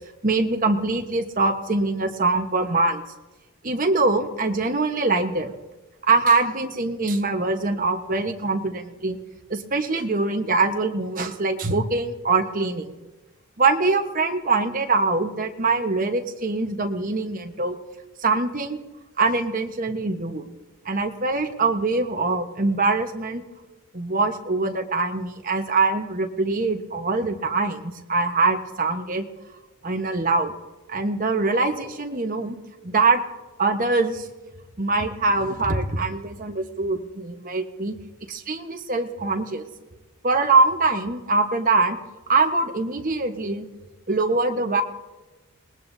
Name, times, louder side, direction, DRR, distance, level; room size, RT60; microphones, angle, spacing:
voice 1, 0.2-3.0 3.6-5.5 6.0-9.2 9.5-12.9 13.6-17.8 18.2-18.8 19.2-20.4 20.8-23.4 23.9-29.3 29.8-30.5 30.9-32.6 32.8-33.2 33.6-34.3 34.8-38.0 38.3-39.6 40.2-42.0 42.3-43.7 44.1-44.8, right 3 dB, 35° right, 4 dB, 1.2 m, -23 dB
27.5 x 19.0 x 2.7 m, 1.1 s
head